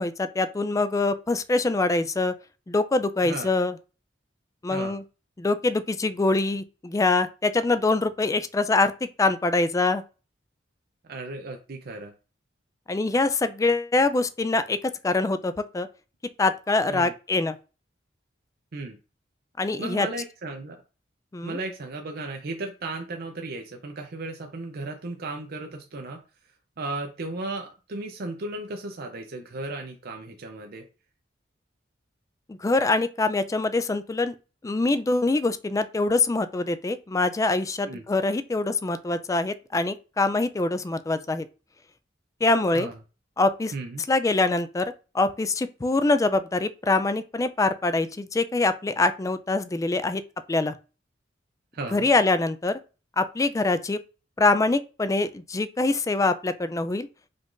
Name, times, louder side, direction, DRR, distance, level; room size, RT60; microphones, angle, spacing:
voice 1, 0.0-2.3 2.7-3.7 4.6-5.0 5.4-8.9 9.2-10.0 12.9-14.8 15.0-15.9 16.4-17.6 19.6-20.1 21.3-21.6 32.5-34.3 34.6-41.5 42.4-42.9 43.4-43.7 44.1-50.2 50.5-50.7 51.9-52.8 53.2-54.0 54.4-57.1, left 3 dB, 20° left, 0.3 m, -24 dB
voice 2, 11.1-12.1 16.9-17.1 18.7-19.0 19.8-20.8 21.4-26.2 26.8-30.8 37.8-38.0 42.7-43.0 43.7-44.0 51.7-52.1, right 2 dB, 55° right, 0.5 m, -35 dB
5.1 x 2.5 x 3.7 m
head